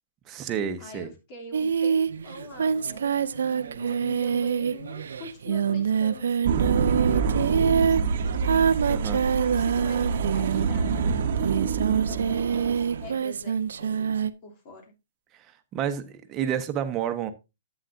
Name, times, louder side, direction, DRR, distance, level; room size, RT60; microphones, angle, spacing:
voice 1, 0.3-1.1 8.9-9.2 15.7-17.3, right 9 dB, 25° right, 1.1 m, -29 dB
voice 2, 0.8-6.6 6.9-8.7 9.3-14.1 14.4-14.9, left 2 dB, 40° left, 3.0 m, -44 dB
Singing, 1.5-10.9 11.4-14.3, right 7 dB, 70° right, 0.6 m, -26 dB
sound 1, 6.4-13.1, right 6 dB, 55° right, 1.0 m, -26 dB
11.0 x 8.2 x 2.6 m
hypercardioid pair, 125°, 0 cm